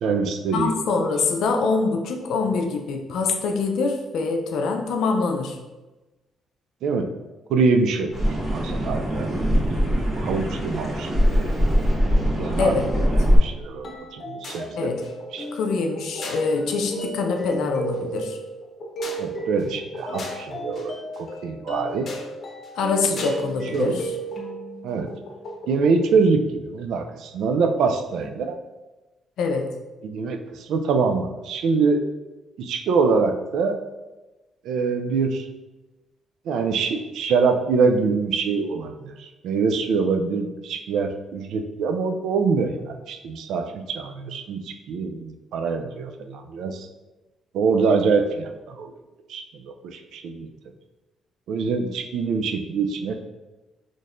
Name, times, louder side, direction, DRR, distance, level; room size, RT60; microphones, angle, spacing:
voice 1, 0.0-0.7 6.8-7.1 7.5-8.1 8.5-9.3 9.9-11.6 12.4-12.9 13.4-14.9 15.3-15.5 19.2-22.1 23.7-23.9 24.8-25.1 25.7-28.6 30.0-32.0 32.6-33.8 34.6-35.5 36.5-46.9 47.5-48.9 49.3-50.5 51.5-53.2, right 4 dB, 80° right, 6 dB, 0.3 m, -24 dB
voice 2, 0.5-5.6 12.6-12.9 14.8-15.0 15.5-18.4 22.8-24.1 29.4-29.7, left 4 dB, 80° left, 4 dB, 0.5 m, -24 dB
sound 1, 8.1-13.4, equal, 45° right, 1.4 m, -22 dB
sound 2, 13.8-26.0, right 1 dB, 55° left, 0.8 m, -34 dB
4.1 x 3.1 x 2.5 m, 1.1 s
cardioid pair, 90°, 0 cm